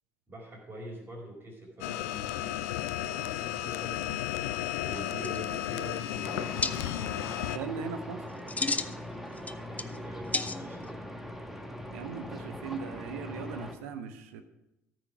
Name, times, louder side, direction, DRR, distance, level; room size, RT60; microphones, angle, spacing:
voice 1, 0.3-2.6 2.9-4.0 4.8-6.8 9.4-11.0 11.4-11.5, right 1 dB, 30° right, -6 dB, 3.9 m, -44 dB
sound 1, 1.8-7.6, left 14 dB, 75° left, 0.4 m, -33 dB
sound 2, 5.2-5.8 6.6-6.7 8.3-9.0 9.4-10.0 10.3-10.9, left 3 dB, 20° left, 0.6 m, -32 dB
sound 3, 6.2-13.8, left 1 dB, 5° right, 1.5 m, -41 dB
voice 2, 7.4-8.2 11.9-14.4, right 5 dB, 75° right, 10 dB, 0.9 m, -39 dB
13.5 x 6.4 x 4.9 m, 0.88 s
hypercardioid pair, 55°, 8 cm